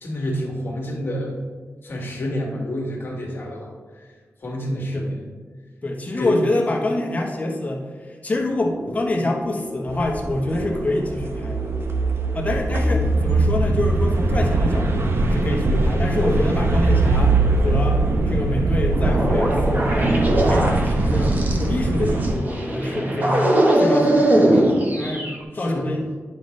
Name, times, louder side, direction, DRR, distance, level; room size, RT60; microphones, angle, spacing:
voice 1, 0.0-1.3 1.8-4.0 4.4-5.2 6.2-6.4 25.5-25.9, equal, 50° left, -2 dB, 1.6 m, -28 dB
voice 2, 5.8-11.7 12.3-18.0 18.3-25.3 25.5-26.1, left 2 dB, 30° left, 0 dB, 1.0 m, -26 dB
sound 1, 8.3-25.4, right 1 dB, 35° right, 1.1 m, -24 dB
sound 2, 9.9-22.3, right 2 dB, 55° right, 0.7 m, -21 dB
10.0 x 5.4 x 3.2 m, 1.5 s
wide cardioid pair, 155°, 5 cm